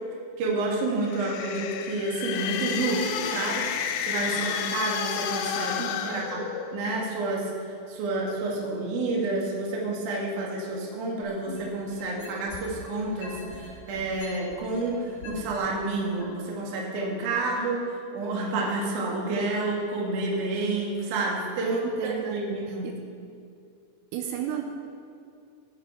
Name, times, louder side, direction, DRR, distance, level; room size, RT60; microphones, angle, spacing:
voice 1, 0.4-3.6 4.0-5.8 6.1-6.4 6.7-7.5 7.9-21.8 22.3-22.9, right 2 dB, 60° right, -3 dB, 2.2 m, -29 dB
sound 1, 0.9-7.0, left 8 dB, 85° left, 2.6 m, -31 dB
voice 2, 5.8-6.5 21.6-23.1 24.1-24.6, right 7 dB, 85° right, 4 dB, 3.1 m, -33 dB
sound 2, 11.2-12.8 13.2-15.6 16.2-16.3, left 4 dB, 60° left, 3.0 m, -43 dB
17.5 x 6.3 x 4.4 m, 2.4 s
omnidirectional pair, 5.8 m